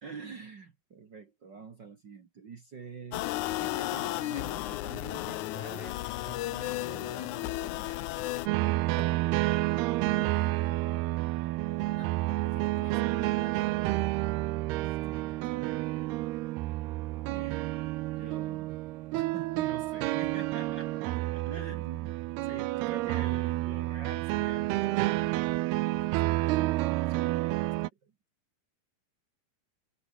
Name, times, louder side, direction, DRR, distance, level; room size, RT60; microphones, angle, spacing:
voice 1, 0.0-3.3 3.6-8.1 15.0-15.3 17.3-17.8 18.2-18.7 19.1-25.7 28.0-28.1, right 5 dB, 50° right, 1.3 m, -47 dB
sound 1, 3.1-8.5, left 16 dB, 85° left, 1.7 m, -34 dB
sound 2, 8.5-27.9, right 18 dB, 85° right, 2.8 m, -30 dB
sound 3, 9.0-17.0, left 3 dB, 25° left, 4.5 m, -57 dB
voice 2, 10.1-10.5 11.9-13.8 14.9-15.4, left 8 dB, 65° left, 4.5 m, -53 dB
omnidirectional pair, 4.5 m